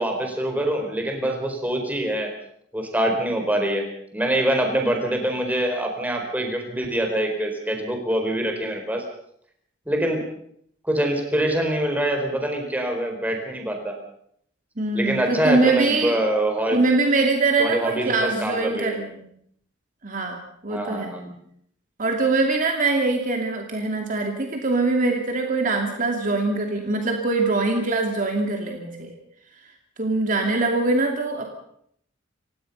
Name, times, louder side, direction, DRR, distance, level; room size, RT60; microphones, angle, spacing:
voice 1, 0.0-2.3 2.7-9.0 9.9-10.3 10.8-14.0 14.9-16.8 17.6-19.0 20.7-21.3, right 1 dB, 10° right, 3 dB, 4.5 m, -24 dB
voice 2, 14.8-16.2 16.7-19.2 20.0-21.1 22.0-29.1 30.0-31.5, right 3 dB, 45° right, 2 dB, 2.6 m, -23 dB
29.0 x 16.5 x 5.5 m, 0.68 s
head